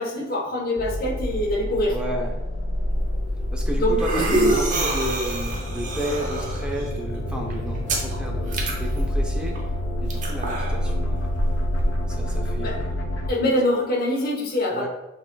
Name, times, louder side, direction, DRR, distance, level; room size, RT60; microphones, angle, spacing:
voice 1, 0.0-1.9 3.8-4.6 12.6-12.8 13.3-14.9, left 1 dB, 50° left, -1 dB, 0.9 m, -24 dB
sound 1, 0.8-13.3, left 1 dB, 75° left, 0.6 m, -28 dB
voice 2, 1.9-2.4 3.5-9.6 10.0-11.3 12.1-13.0 14.7-14.9, equal, 5° right, -1 dB, 0.6 m, -33 dB
sound 2, 2.9-12.4, right 1 dB, 40° right, 0.7 m, -28 dB
6.3 x 3.7 x 2.3 m, 0.94 s
head